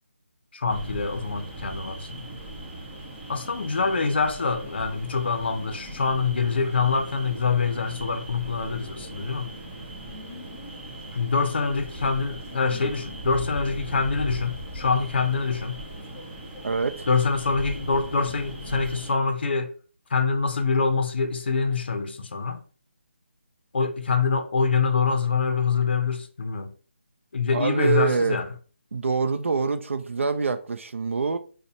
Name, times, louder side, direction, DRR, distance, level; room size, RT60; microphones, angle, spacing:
voice 1, 0.5-2.3 3.3-9.5 11.1-15.8 17.1-19.7 20.1-22.6 23.7-26.7 27.3-28.5, left 5 dB, 55° left, 0.5 m, -25 dB
sound 1, 0.7-19.1, right 1 dB, 5° right, 0.3 m, -38 dB
voice 2, 16.6-17.1 27.5-28.4 28.9-31.4, right 5 dB, 80° right, 0.4 m, -25 dB
5.1 x 2.1 x 2.8 m
hypercardioid pair, 170°, 7 cm